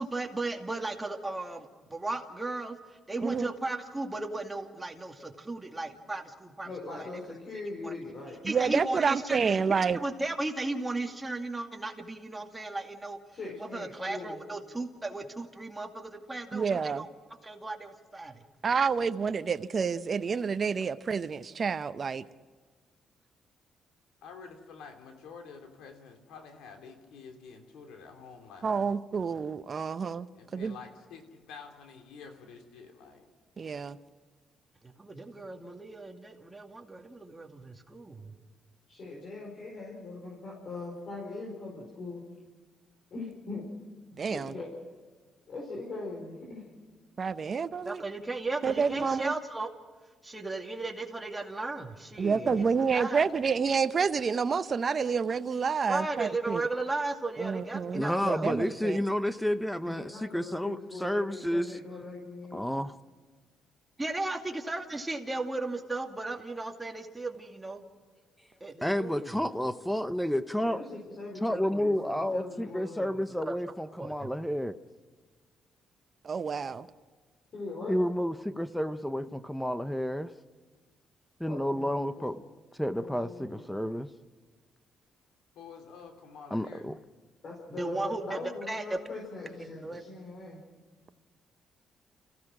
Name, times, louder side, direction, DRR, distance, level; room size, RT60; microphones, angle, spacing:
voice 1, 0.0-7.2 7.8-7.9 8.4-9.4 9.7-13.2 13.6-17.1 17.4-18.4 34.8-38.3 47.8-49.7 50.2-52.7 52.9-53.2 55.8-58.5 64.0-67.8 68.6-69.4 73.5-73.6 74.0-74.3 87.7-89.0 89.6-90.2, right 2 dB, 15° right, 2 dB, 2.4 m, -36 dB
voice 2, 6.6-8.4 13.3-14.4 29.7-29.8 38.9-42.2 43.1-43.6 44.2-44.7 45.5-46.6 52.4-52.6 59.8-62.6 68.6-68.7 70.6-73.2 77.5-77.9 81.4-82.0 82.9-83.7 87.4-90.6, left 3 dB, 55° left, -2 dB, 5.0 m, -41 dB
voice 3, 8.4-10.0 16.5-17.0 18.6-22.2 28.6-30.3 30.5-30.7 33.6-34.0 44.2-44.5 47.2-48.0 48.6-49.3 52.2-56.6 57.4-59.0 76.2-76.9, right 5 dB, 45° right, 11 dB, 0.7 m, -29 dB
voice 4, 24.2-29.4 30.3-33.3 82.1-82.3 83.0-83.1 85.5-86.9, left 5 dB, 85° left, 4 dB, 2.9 m, -49 dB
voice 5, 57.9-61.7 62.5-62.9 68.8-70.8 71.4-74.7 77.9-80.3 81.4-82.4 82.8-84.1 86.5-86.9, equal, 5° left, 12 dB, 0.8 m, -30 dB
29.5 x 16.0 x 6.2 m, 1.4 s
cardioid pair, 90°, 0 cm